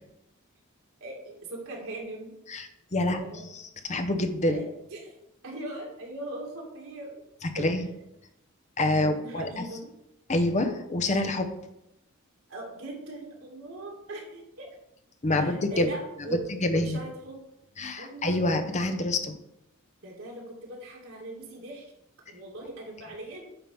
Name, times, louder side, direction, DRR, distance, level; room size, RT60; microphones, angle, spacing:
voice 1, 1.0-2.3 3.0-3.5 4.4-4.6 4.9-5.1 5.4-7.2 7.5-7.9 9.0-9.9 12.5-14.7 15.3-16.4 16.7-17.4 18.0-18.4 20.0-21.9 22.3-23.5, right 1 dB, 90° right, -2 dB, 2.3 m, -40 dB
voice 2, 2.5-3.2 3.5-4.6 7.4-7.9 8.8-9.6 10.3-11.5 15.2-15.9 16.3-17.0 17.8-19.4, left 1 dB, 35° left, 7 dB, 0.8 m, -27 dB
8.8 x 4.0 x 5.4 m, 0.84 s
head